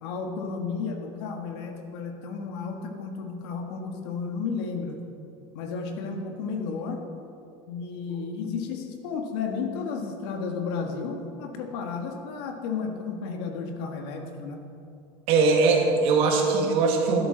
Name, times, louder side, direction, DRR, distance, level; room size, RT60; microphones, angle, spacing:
voice 1, 0.0-5.0 5.5-7.0 7.7-14.6, left 5 dB, 75° left, 3 dB, 1.5 m, -33 dB
voice 2, 15.3-17.3, right 4 dB, 45° right, 1 dB, 1.7 m, -21 dB
12.0 x 11.5 x 3.9 m, 2.6 s
cardioid pair, 170°, 13 cm